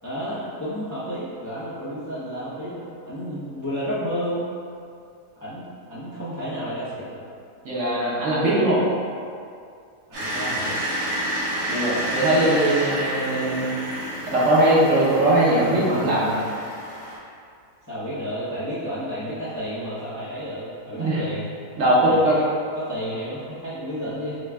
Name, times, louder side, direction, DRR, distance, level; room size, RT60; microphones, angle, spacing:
voice 1, 0.0-4.5 5.4-7.2 10.1-10.8 17.9-21.4 22.0-24.4, equal, 20° left, -11 dB, 0.5 m, -31 dB
voice 2, 7.6-8.8 11.7-13.7 14.3-16.4 20.9-21.2 21.8-22.3, right 1 dB, 55° right, -8 dB, 1.1 m, -20 dB
sound 1, 10.1-17.2, right 1 dB, 90° right, 2.1 m, -29 dB
5.3 x 2.3 x 3.5 m, 2.3 s
omnidirectional pair, 1.7 m